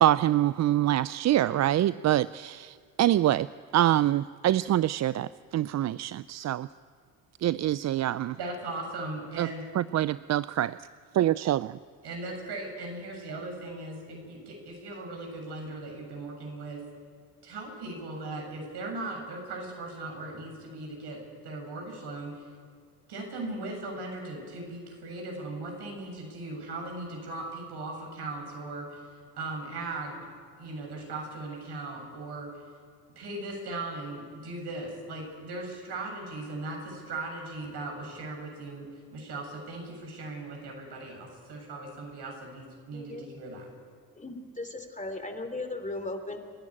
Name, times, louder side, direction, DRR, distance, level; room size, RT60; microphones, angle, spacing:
voice 1, 0.0-3.5 3.7-6.7 7.4-8.4 9.4-9.5 9.7-10.8 11.1-11.8, right 13 dB, 40° right, 17 dB, 0.5 m, -25 dB
voice 2, 8.3-9.6 12.0-16.8 17.4-22.4 23.1-29.0 29.4-30.2 30.6-32.5 33.2-43.7, right 2 dB, 65° right, 1 dB, 7.9 m, -38 dB
voice 3, 42.9-43.3 44.1-46.4, left 2 dB, 15° left, 6 dB, 3.1 m, -37 dB
30.0 x 11.0 x 9.0 m, 2.1 s
hypercardioid pair, 60°, 44 cm